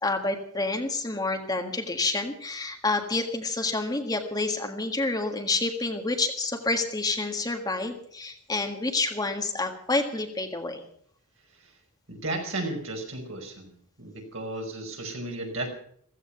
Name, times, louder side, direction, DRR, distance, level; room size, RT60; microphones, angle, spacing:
voice 1, 0.0-10.8, left 2 dB, 20° left, 4 dB, 1.7 m, -28 dB
voice 2, 12.1-13.7 14.0-15.7, right 2 dB, 65° right, 2 dB, 5.2 m, -34 dB
15.5 x 15.0 x 5.7 m, 0.64 s
head